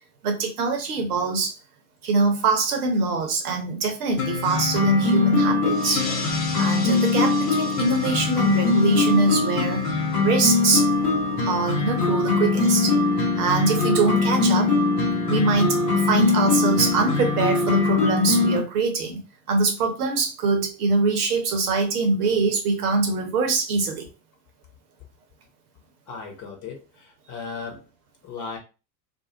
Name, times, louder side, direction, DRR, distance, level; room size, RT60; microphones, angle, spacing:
voice 1, 0.2-1.5 2.0-9.8 10.2-10.9 11.4-14.7 15.3-19.2 19.5-24.1, right 3 dB, 60° right, 4 dB, 0.9 m, -23 dB
sound 1, 4.2-18.6, left 4 dB, 65° left, 0.9 m, -22 dB
sound 2, 5.7-10.8, left 3 dB, 20° left, 0.5 m, -38 dB
voice 2, 26.1-27.9 28.2-28.6, left 5 dB, 35° left, 2 dB, 1.0 m, -36 dB
2.5 x 2.1 x 2.8 m, 0.30 s
figure-of-eight pair, 80°, 50 cm